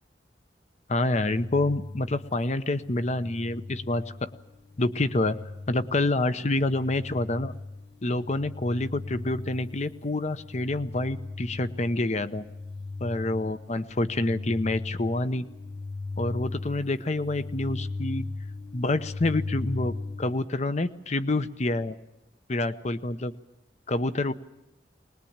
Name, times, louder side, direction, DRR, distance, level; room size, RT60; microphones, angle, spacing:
voice 1, 0.9-4.3 4.8-5.4 5.7-7.5 8.0-12.4 13.0-15.4 16.2-18.3 18.7-22.0 22.5-23.3 23.9-24.3, left 2 dB, 40° left, 12 dB, 0.8 m, -27 dB
sound 1, 1.1-20.5, left 3 dB, 75° left, 1.2 m, -38 dB
21.5 x 20.5 x 8.8 m, 0.96 s
head